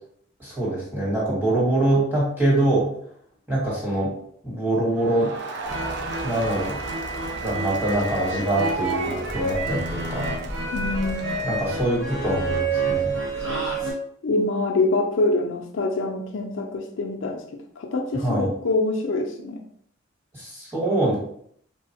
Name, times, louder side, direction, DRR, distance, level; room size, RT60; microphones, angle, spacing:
voice 1, 0.4-2.9 3.5-4.1 4.4-5.3 6.2-6.8 7.4-10.4 11.4-13.2 18.1-18.5 20.3-21.2, right 1 dB, 10° right, -6 dB, 1.1 m, -24 dB
Crowd, 4.9-12.0, right 4 dB, 55° right, 0.4 m, -35 dB
sound 1, 5.6-13.9, right 2 dB, 75° right, 1.0 m, -29 dB
voice 2, 10.7-11.4 14.2-17.4 17.8-19.6, left 2 dB, 75° left, 3 dB, 0.4 m, -25 dB
3.7 x 2.0 x 2.7 m, 0.66 s
head